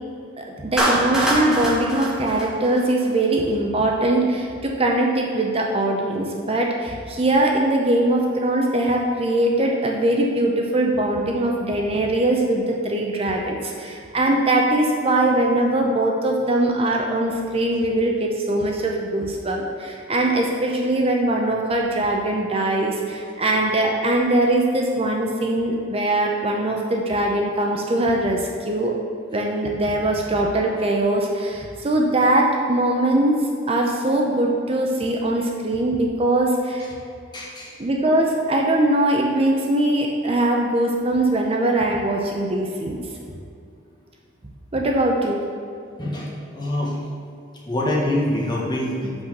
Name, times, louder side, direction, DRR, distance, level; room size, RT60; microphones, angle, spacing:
voice 1, 0.4-28.9 29.3-36.9 37.8-43.0 44.7-45.4, right 1 dB, 30° right, 0 dB, 0.7 m, -21 dB
Clapping, 0.8-3.2, right 1 dB, 5° right, 1.4 m, -23 dB
voice 2, 37.3-37.7 46.0-46.3 46.5-46.9 47.7-49.2, left 1 dB, 25° left, -4 dB, 1.6 m, -25 dB
6.1 x 5.7 x 6.6 m, 2.5 s
head